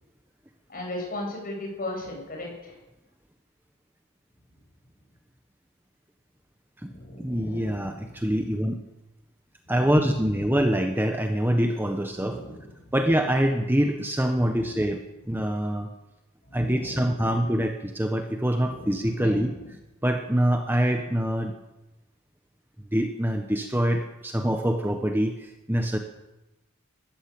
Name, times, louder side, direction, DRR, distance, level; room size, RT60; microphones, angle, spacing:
voice 1, 0.7-2.8 6.8-8.3 9.6-10.0 12.2-12.6 14.4-14.8 16.5-17.1 18.6-19.4, left 1 dB, 40° left, 0 dB, 8.0 m, -38 dB
voice 2, 7.2-8.8 9.7-12.4 12.9-15.0 15.3-15.9 16.5-19.5 20.0-21.5 22.9-26.0, equal, 10° right, 5 dB, 1.2 m, -25 dB
21.5 x 14.5 x 8.7 m, 0.99 s
head